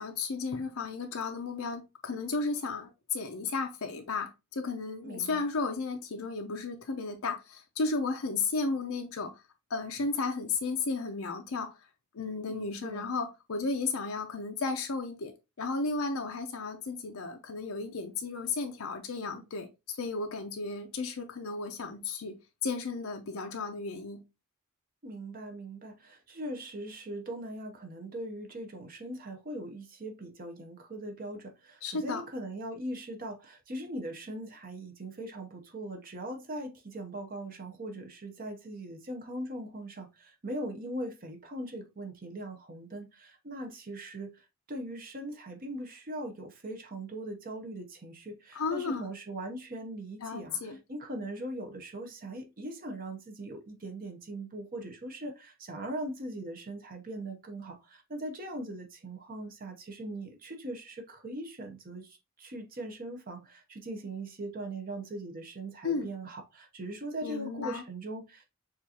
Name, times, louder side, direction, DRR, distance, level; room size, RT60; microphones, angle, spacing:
voice 1, 0.0-9.3 9.7-11.7 12.1-24.2 31.8-32.2 48.5-49.1 50.2-50.8 65.8-66.1 67.2-67.8, left 4 dB, 75° left, 0.6 m, -34 dB
voice 2, 5.0-5.5 12.5-13.1 25.0-68.5, right 1 dB, 40° right, 0.8 m, -40 dB
6.5 x 2.5 x 2.8 m
head